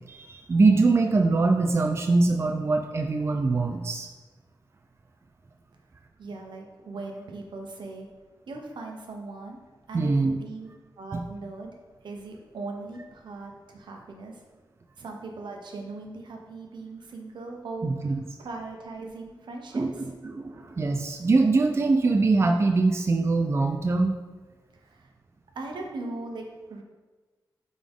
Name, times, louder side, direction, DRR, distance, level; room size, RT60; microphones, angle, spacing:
voice 1, 0.1-4.1 9.9-10.4 11.1-11.2 17.8-18.1 19.7-24.1, right 3 dB, 35° right, 3 dB, 0.5 m, -23 dB
voice 2, 6.2-8.1 8.5-9.6 9.9-10.7 11.0-11.8 12.0-14.4 15.0-20.1 24.8-25.1 25.5-26.8, right 3 dB, 80° right, 2 dB, 1.0 m, -39 dB
8.7 x 3.8 x 3.6 m, 1.3 s
wide cardioid pair, 100°, 8 cm